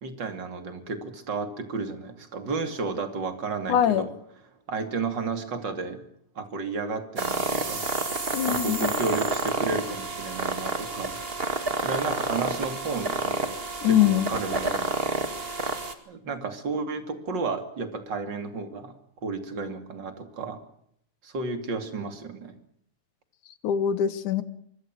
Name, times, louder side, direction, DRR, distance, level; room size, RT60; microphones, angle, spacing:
voice 1, 0.0-4.1 4.7-6.0 6.3-7.9 8.4-11.2 11.8-13.6 13.8-14.9 16.1-18.9 19.2-20.6 21.2-22.5, right 4 dB, 35° right, 7 dB, 3.2 m, -32 dB
voice 2, 3.7-4.1 8.3-8.9 13.8-14.3 23.6-24.4, left 10 dB, 90° left, 13 dB, 2.9 m, -23 dB
sound 1, 7.2-15.9, right 3 dB, 20° right, 2.1 m, -29 dB
25.0 x 22.0 x 6.2 m, 0.70 s
omnidirectional pair, 3.4 m